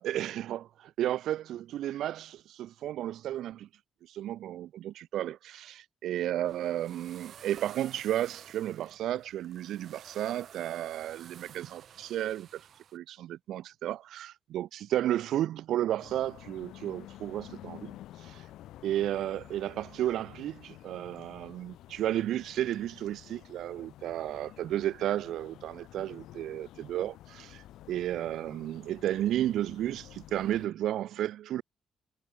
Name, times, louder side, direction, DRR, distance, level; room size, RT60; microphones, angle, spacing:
voice 1, 0.0-3.7 4.0-18.5 18.8-31.6, right 12 dB, 80° right, 0.9 m, -33 dB
sound 1, 6.1-13.0, right 8 dB, 60° right, 6.9 m, -52 dB
sound 2, 16.0-30.7, left 14 dB, 85° left, 3.4 m, -51 dB
cardioid pair, 90°, 0 cm